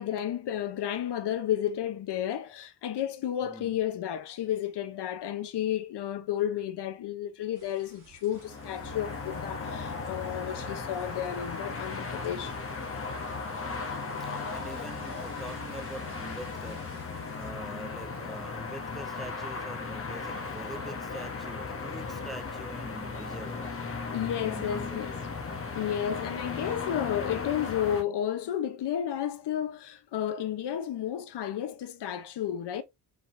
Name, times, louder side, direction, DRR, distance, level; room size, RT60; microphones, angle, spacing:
voice 1, 0.0-12.5 24.1-25.1 25.7-32.8, left 10 dB, 80° left, 0.8 m, -32 dB
voice 2, 3.4-3.7 13.5-23.8 24.4-25.3, right 1 dB, ahead, 0.6 m, -45 dB
sound 1, 7.5-17.5, right 3 dB, 50° right, 2.5 m, -56 dB
sound 2, 8.3-28.0, left 4 dB, 35° left, 0.9 m, -36 dB
4.6 x 3.6 x 2.6 m
wide cardioid pair, 115°, 40 cm